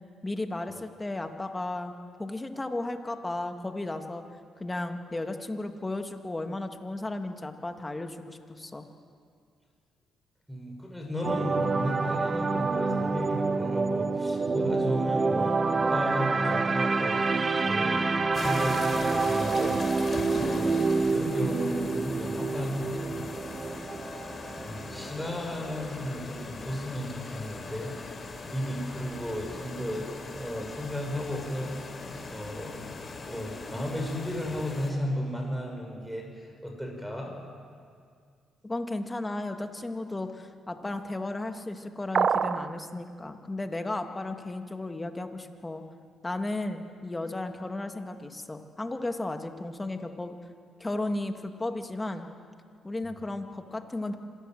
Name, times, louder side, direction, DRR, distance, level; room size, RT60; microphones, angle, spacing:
voice 1, 0.2-4.3 4.6-8.9 38.6-45.8 46.2-50.4 50.8-52.3 52.8-54.2, left 2 dB, 15° left, 6 dB, 1.9 m, -34 dB
voice 2, 10.5-19.9 20.3-23.3 24.5-27.9 28.4-32.0 32.3-37.3, equal, ahead, 0 dB, 6.1 m, -34 dB
sound 1, 11.2-25.4 25.7-25.9, right 4 dB, 30° right, 1.1 m, -27 dB
sound 2, 18.3-34.9, left 3 dB, 35° left, 3.4 m, -40 dB
sound 3, 42.1-42.7, right 7 dB, 50° right, 0.8 m, -24 dB
26.5 x 18.0 x 7.8 m, 2.2 s
cardioid pair, 90°, 0 cm